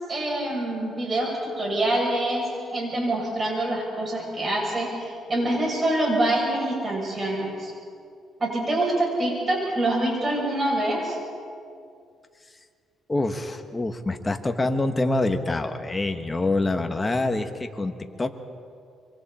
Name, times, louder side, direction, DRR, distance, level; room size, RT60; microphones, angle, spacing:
voice 1, 0.1-2.4 2.7-7.7 8.4-11.2, right 1 dB, 35° right, -2 dB, 7.7 m, -25 dB
voice 2, 13.1-18.3, left 2 dB, 20° left, 6 dB, 1.5 m, -26 dB
26.5 x 24.0 x 4.4 m, 2.3 s
cardioid pair, 90°, 0 cm